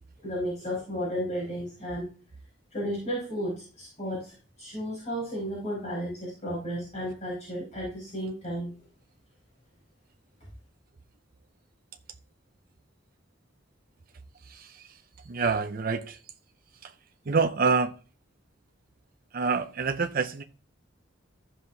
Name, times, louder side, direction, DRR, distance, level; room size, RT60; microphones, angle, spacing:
voice 1, 0.2-2.1 2.7-4.3 4.6-8.7, equal, 35° left, 5.1 m, -33 dB
voice 2, 15.3-16.2 17.3-17.9 19.3-20.4, right 5 dB, 50° right, 0.5 m, -26 dB
15.0 x 5.6 x 2.8 m
head